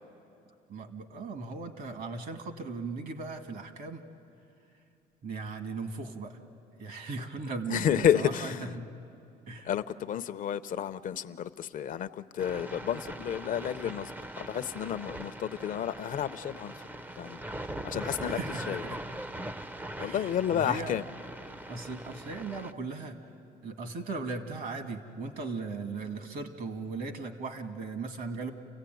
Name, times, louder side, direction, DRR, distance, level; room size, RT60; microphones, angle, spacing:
voice 1, 0.7-4.0 5.2-6.4 6.8-8.9 9.5-9.7 18.2-19.0 20.0-21.0 21.7-23.3 23.6-28.5, right 3 dB, 60° right, 2.1 m, -38 dB
voice 2, 7.7-8.8 9.6-14.1 14.4-16.7 17.2-17.4 17.6-18.4 18.7-18.8 20.0-21.0, left 9 dB, 50° left, 0.7 m, -31 dB
sound 1, 12.4-22.7, right 1 dB, 10° right, 0.6 m, -41 dB
29.0 x 16.0 x 9.3 m
cardioid pair, 110°, 17 cm